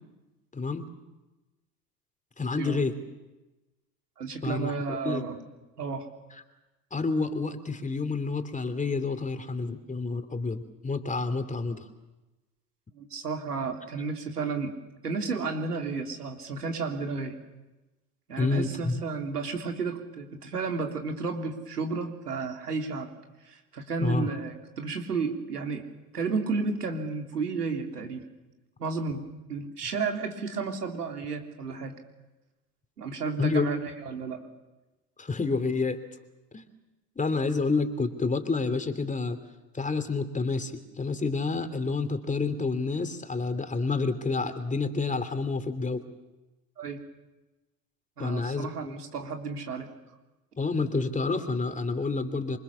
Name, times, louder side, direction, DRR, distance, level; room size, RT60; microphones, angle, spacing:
voice 1, 0.5-0.9 2.4-2.9 4.4-5.2 6.9-11.9 18.4-19.0 24.0-24.3 33.4-33.7 35.2-36.0 36.5-36.7 37.2-39.4 39.7-46.0 48.2-48.9 50.6-52.6, left 3 dB, 15° left, 9 dB, 3.0 m, -29 dB
voice 2, 4.2-5.4 5.8-6.1 12.9-17.4 18.3-23.1 23.4-25.9 26.1-28.3 28.8-29.2 29.5-32.0 33.0-34.5 46.8-47.0 48.2-49.9, right 4 dB, 90° right, 4 dB, 3.4 m, -32 dB
27.5 x 24.5 x 7.1 m, 1.1 s
hypercardioid pair, 75°, 45 cm